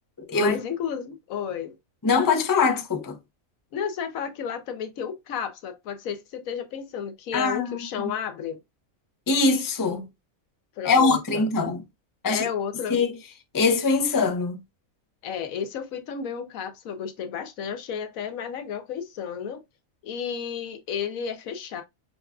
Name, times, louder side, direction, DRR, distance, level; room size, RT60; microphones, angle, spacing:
voice 1, 0.3-1.7 3.7-8.6 10.8-11.4 12.3-13.0 15.2-19.6 20.0-21.8, left 7 dB, 90° left, 1.2 m, -32 dB
voice 2, 2.0-3.2 7.3-7.7 8.0-8.1 9.3-10.0 10.8-11.8 12.2-12.5 12.9-13.1 13.5-14.6, left 4 dB, 25° left, 0.4 m, -22 dB
6.6 x 2.4 x 2.3 m
omnidirectional pair, 1.4 m